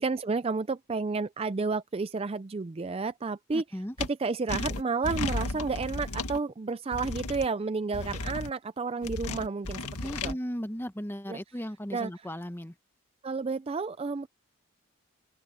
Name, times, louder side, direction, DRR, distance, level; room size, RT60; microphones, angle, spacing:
voice 1, 0.0-3.6 4.0-10.4 11.3-11.4 11.9-12.3 13.2-14.3, right 4 dB, 25° right, 0.4 m, -31 dB
voice 2, 3.5-4.0 10.0-12.7, equal, 10° left, 1.0 m, -36 dB
sound 1, 4.0-4.1 4.5-6.4 6.9-7.5 7.9-8.5 9.0-10.3, left 2 dB, 90° left, 1.9 m, -34 dB
open air
head